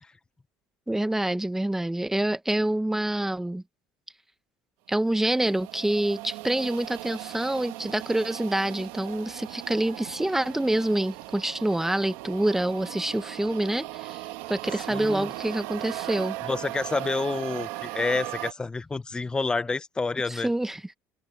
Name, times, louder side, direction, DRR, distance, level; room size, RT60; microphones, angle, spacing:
voice 1, 0.9-3.6 4.9-16.4 20.3-20.8, right 1 dB, 5° right, 1.0 m, -27 dB
sound 1, 5.0-18.5, right 19 dB, 85° right, 1.5 m, -38 dB
voice 2, 14.9-15.3 16.5-20.5, left 3 dB, 15° left, 0.6 m, -28 dB
open air
cardioid pair, 135°, 7 cm